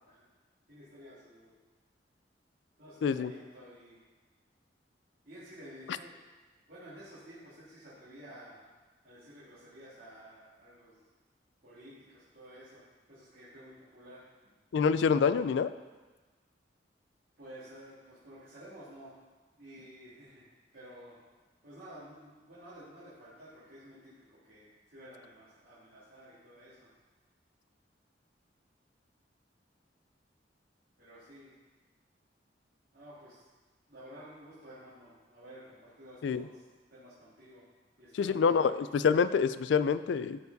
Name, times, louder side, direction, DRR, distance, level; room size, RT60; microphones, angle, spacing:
voice 1, 0.7-1.5 2.8-4.0 5.2-6.2 6.7-8.6 9.0-11.0 11.6-12.8 13.1-14.2 17.4-19.1 19.6-21.2 21.6-26.9 31.0-31.5 32.9-33.4 33.9-36.6 36.9-37.6 38.0-38.6, equal, 60° right, -11 dB, 2.6 m, -52 dB
voice 2, 3.0-3.3 14.7-15.7 36.2-36.4 38.1-40.4, left 6 dB, 85° left, 14 dB, 0.3 m, -26 dB
13.0 x 4.7 x 4.0 m, 1.3 s
head